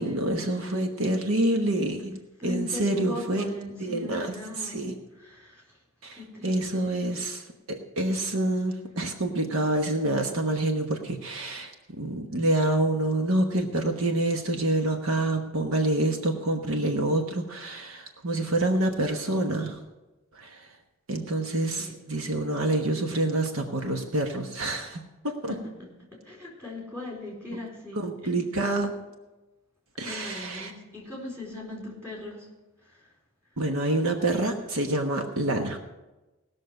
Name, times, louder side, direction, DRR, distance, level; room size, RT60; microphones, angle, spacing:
voice 1, 0.0-3.5 3.8-4.9 6.0-19.8 20.3-20.7 21.1-25.6 27.5-27.6 28.0-28.9 30.0-30.7 33.6-35.8, right 1 dB, 75° right, 4 dB, 1.2 m, -27 dB
voice 2, 2.4-4.8 5.2-5.8 6.1-6.9 21.8-21.9 25.5-28.4 30.0-32.5 32.8-33.1, left 2 dB, 10° right, -3 dB, 4.3 m, -39 dB
18.5 x 6.5 x 6.5 m, 1.1 s
head